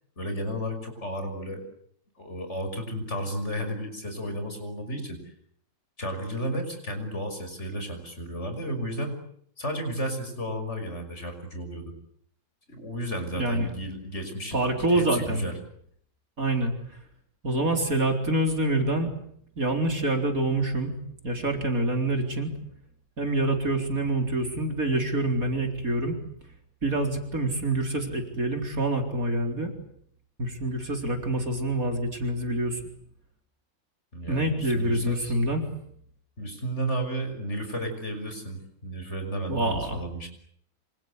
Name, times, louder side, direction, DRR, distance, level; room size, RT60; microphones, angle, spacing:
voice 1, 0.2-1.6 2.2-5.3 6.0-9.2 9.6-11.9 12.7-15.5 34.1-35.3 36.4-40.3, right 1 dB, 35° left, 6 dB, 6.2 m, -33 dB
voice 2, 14.5-15.4 16.4-16.7 17.4-19.1 19.6-20.9 21.2-22.5 23.2-26.1 26.8-29.7 30.4-32.8 34.3-35.6 39.5-40.0, right 1 dB, 45° right, 4 dB, 4.5 m, -26 dB
27.0 x 27.0 x 8.1 m, 0.68 s
omnidirectional pair, 2.0 m